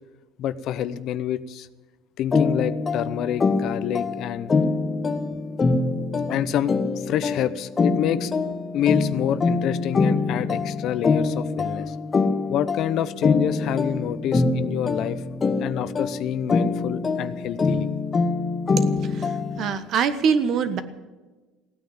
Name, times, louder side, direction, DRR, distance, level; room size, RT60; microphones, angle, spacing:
voice 1, 0.4-1.7 2.2-4.5 6.3-8.3 8.7-11.9 12.5-15.2 15.6-17.9, left 10 dB, 55° left, 14 dB, 0.8 m, -27 dB
sound 1, 2.3-19.8, left 4 dB, 20° left, 1.0 m, -24 dB
voice 2, 19.0-20.8, right 6 dB, 50° right, 12 dB, 1.3 m, -24 dB
16.5 x 9.3 x 9.3 m, 1.2 s
cardioid pair, 140°, 0 cm